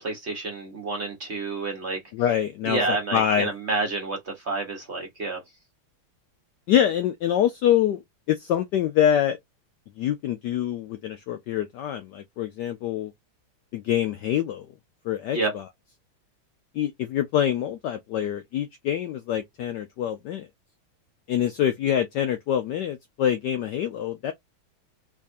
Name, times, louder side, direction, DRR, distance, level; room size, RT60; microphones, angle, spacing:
voice 1, 0.0-2.0 2.6-5.4 15.3-15.5, right 3 dB, 45° right, 1.0 m, -29 dB
voice 2, 2.1-3.5 6.7-8.0 8.3-9.4 10.0-13.1 13.7-14.7 15.1-15.4 16.7-20.5 21.3-24.3, left 10 dB, 90° left, 0.9 m, -25 dB
3.6 x 3.2 x 2.5 m
omnidirectional pair, 2.4 m